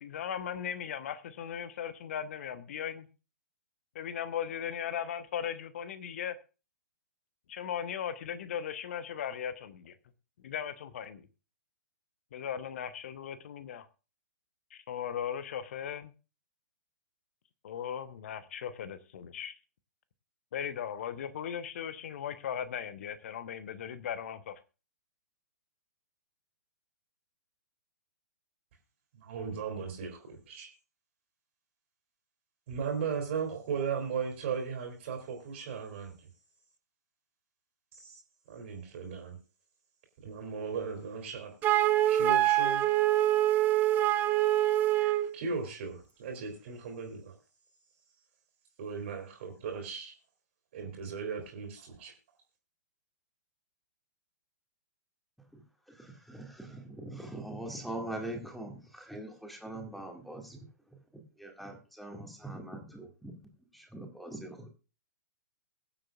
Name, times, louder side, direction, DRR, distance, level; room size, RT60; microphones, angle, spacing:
voice 1, 0.0-3.1 3.9-6.4 7.5-9.9 10.4-11.3 12.3-13.9 14.7-16.1 17.6-19.5 20.5-24.6, left 9 dB, 50° left, 12 dB, 1.1 m, -37 dB
voice 2, 29.1-30.7 32.7-36.1 37.9-38.2 38.5-39.4 40.2-41.5 42.1-42.8 44.9-47.3 48.8-50.1 50.7-52.1, right 6 dB, 45° right, 2 dB, 3.0 m, -37 dB
Wind instrument woodwind instrument, 41.6-45.3, right 13 dB, 20° right, 0.7 m, -25 dB
voice 3, 55.9-60.7 61.1-64.7, right 1 dB, ahead, 2 dB, 2.1 m, -42 dB
22.0 x 7.6 x 2.5 m, 0.33 s
figure-of-eight pair, 115°, 9 cm